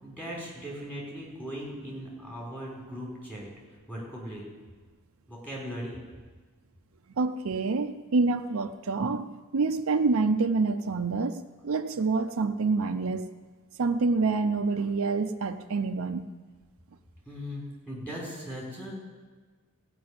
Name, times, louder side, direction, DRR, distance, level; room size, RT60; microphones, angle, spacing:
voice 1, 0.0-3.5 3.9-4.5 5.3-6.0 17.3-18.9, equal, 10° left, -4 dB, 4.4 m, -38 dB
voice 2, 7.2-13.3 13.8-16.3, right 4 dB, 70° right, 6 dB, 0.6 m, -27 dB
15.5 x 6.0 x 9.5 m, 1.4 s
head